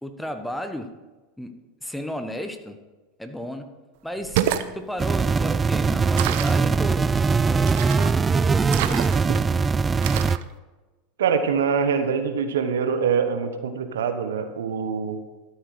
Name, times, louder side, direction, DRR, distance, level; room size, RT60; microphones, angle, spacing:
voice 1, 0.0-0.9 1.4-1.5 1.8-2.8 3.2-3.7 4.0-4.4 4.7-7.1 7.5-9.2, equal, 5° left, 7 dB, 1.2 m, -34 dB
sound 1, 4.2-4.7 6.2-6.6 7.7-8.2 8.7-9.4 10.0-10.4, right 11 dB, 65° right, 0.7 m, -27 dB
sound 2, 5.0-10.4, right 4 dB, 20° right, 0.3 m, -21 dB
voice 2, 11.2-15.2, right 6 dB, 80° right, 8 dB, 1.1 m, -24 dB
13.0 x 7.9 x 5.0 m, 1.2 s
hypercardioid pair, 90°, 0 cm